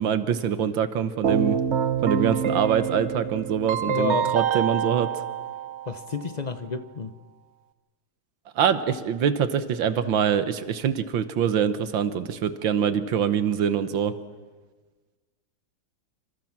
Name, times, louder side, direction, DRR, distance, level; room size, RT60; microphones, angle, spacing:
voice 1, 0.0-1.6 2.0-5.1 8.6-14.2, right 8 dB, 80° right, 12 dB, 1.9 m, -24 dB
Keyboard (musical), 1.2-6.2, right 8 dB, 50° right, 0.9 m, -26 dB
voice 2, 3.9-4.3 5.9-7.1, left 4 dB, 40° left, 11 dB, 0.6 m, -30 dB
28.0 x 26.5 x 6.0 m, 1.3 s
omnidirectional pair, 2.1 m